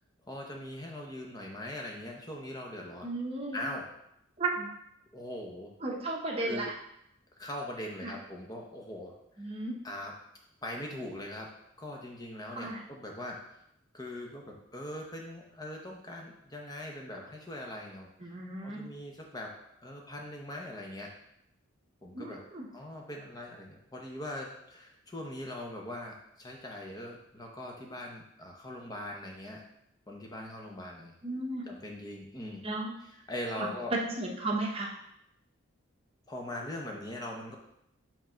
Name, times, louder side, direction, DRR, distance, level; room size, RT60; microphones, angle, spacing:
voice 1, 0.3-3.1 3.5-3.9 5.1-5.7 6.4-6.7 7.4-9.5 9.8-10.1 10.6-11.5 11.8-13.6 13.9-18.3 18.6-19.5 19.8-21.1 22.0-22.4 22.7-29.6 30.1-31.1 31.7-32.6 33.3-33.9 36.3-37.6, left 1 dB, 20° left, 0 dB, 1.0 m, -41 dB
voice 2, 3.0-3.7 4.4-4.7 5.8-6.7 8.0-8.1 9.4-9.8 12.5-12.8 18.2-18.8 22.1-22.7 31.2-31.7 32.6-32.9 33.6-34.9, right 2 dB, 30° right, -1 dB, 1.0 m, -34 dB
5.5 x 3.8 x 5.7 m, 0.77 s
head